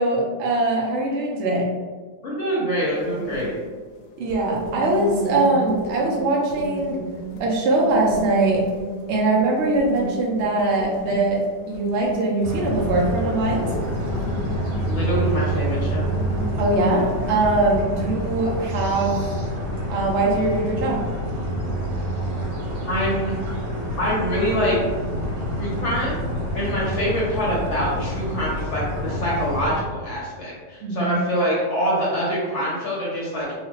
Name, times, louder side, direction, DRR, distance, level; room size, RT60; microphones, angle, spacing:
voice 1, 0.0-1.7 4.2-7.0 7.4-8.6 9.1-13.7 16.6-19.3 19.9-21.0 30.8-31.1, right 2 dB, 60° right, -2 dB, 0.7 m, -22 dB
voice 2, 2.2-3.5 14.8-16.1 22.9-23.4 24.0-24.8 25.6-26.2 26.5-33.5, equal, 50° left, -6 dB, 1.0 m, -25 dB
sound 1, 2.9-19.2, left 2 dB, 80° left, 1.1 m, -35 dB
sound 2, 12.4-29.8, equal, 80° right, 1.5 m, -27 dB
2.9 x 2.4 x 3.1 m, 1.4 s
omnidirectional pair, 1.9 m